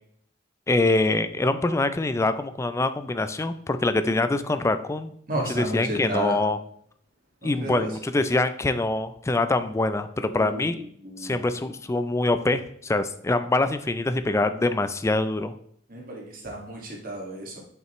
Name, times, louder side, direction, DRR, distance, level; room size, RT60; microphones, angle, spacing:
voice 1, 0.7-5.1 5.5-6.6 7.4-10.8 11.2-15.5, left 2 dB, 15° left, 11 dB, 0.3 m, -24 dB
voice 2, 5.3-6.4 7.4-7.9 10.4-10.6 11.0-11.4 15.9-17.6, right 1 dB, 50° right, -1 dB, 1.9 m, -32 dB
7.6 x 5.6 x 3.0 m, 0.66 s
head